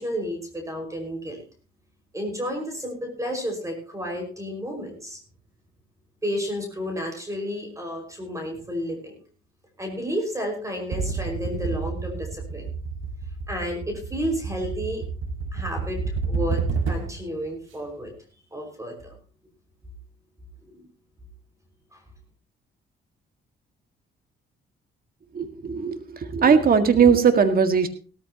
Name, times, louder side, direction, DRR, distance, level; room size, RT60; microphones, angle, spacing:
voice 1, 0.0-1.4 2.1-5.2 6.2-9.2 9.8-12.7 13.5-15.0 15.5-18.1 18.5-19.1 20.7-20.8 21.9-22.0, equal, 15° right, 3 dB, 5.5 m, -31 dB
sound 1, 10.9-17.3, right 4 dB, 75° right, 1.9 m, -30 dB
voice 2, 25.4-26.0 26.3-27.9, right 6 dB, 50° right, 8 dB, 1.9 m, -18 dB
17.5 x 13.5 x 3.0 m, 0.37 s
cardioid pair, 90°, 20 cm